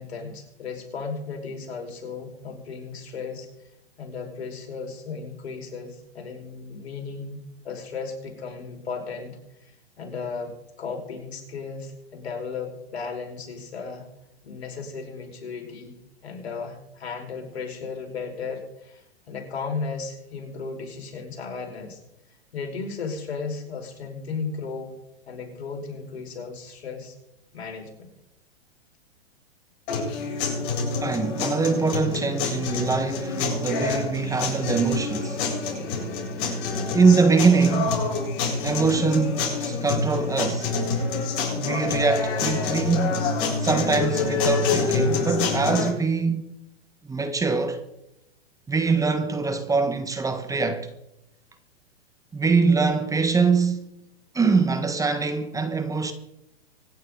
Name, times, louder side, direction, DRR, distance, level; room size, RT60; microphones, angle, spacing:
voice 1, 0.0-3.5 4.0-7.4 7.6-10.5 10.8-14.0 14.4-15.9 16.2-22.0 22.5-24.9 25.3-27.1 27.5-28.1, left 4 dB, 80° left, 5.3 m, -35 dB
sound 1, 29.9-45.9, left 4 dB, 50° left, 7.9 m, -27 dB
voice 2, 31.0-35.4 36.9-38.0 38.6-40.7 41.6-43.2 43.6-46.5 47.0-47.8 48.7-50.9 52.3-53.9 54.3-56.1, right 4 dB, 10° right, 1.5 m, -23 dB
25.5 x 10.5 x 4.0 m
hypercardioid pair, 120°, 32 cm